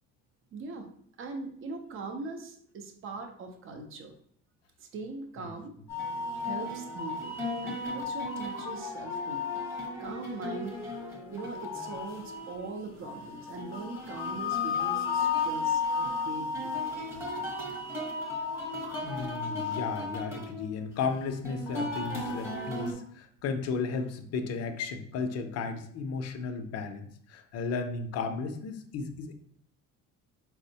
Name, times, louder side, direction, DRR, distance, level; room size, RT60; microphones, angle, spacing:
voice 1, 0.5-0.9 1.2-4.1 4.8-5.7 6.4-9.6 10.0-10.8 11.3-16.7, right 3 dB, 40° right, 4 dB, 0.6 m, -41 dB
sound 1, 5.9-22.9, left 4 dB, 10° right, 0.9 m, -34 dB
voice 2, 19.0-27.0 27.3-29.3, left 4 dB, 50° left, 6 dB, 0.5 m, -34 dB
4.3 x 2.0 x 2.7 m, 0.63 s
cardioid pair, 120°, 32 cm